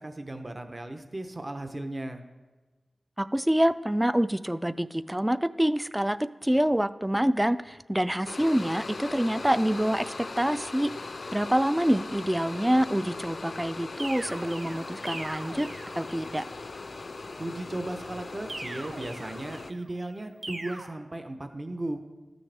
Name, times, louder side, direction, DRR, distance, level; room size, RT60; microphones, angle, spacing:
voice 1, 0.0-2.2 17.4-22.0, right 1 dB, 30° right, 6 dB, 0.7 m, -36 dB
voice 2, 3.2-10.9 11.3-15.7 16.0-16.5, equal, 10° right, 15 dB, 0.3 m, -26 dB
sound 1, 8.2-19.7, left 3 dB, 60° left, 0.4 m, -39 dB
sound 2, 14.0-16.4 18.5-19.9 20.4-20.9, right 2 dB, 60° right, 1.0 m, -41 dB
14.0 x 6.2 x 3.3 m, 1.3 s
wide cardioid pair, 70°, 0 cm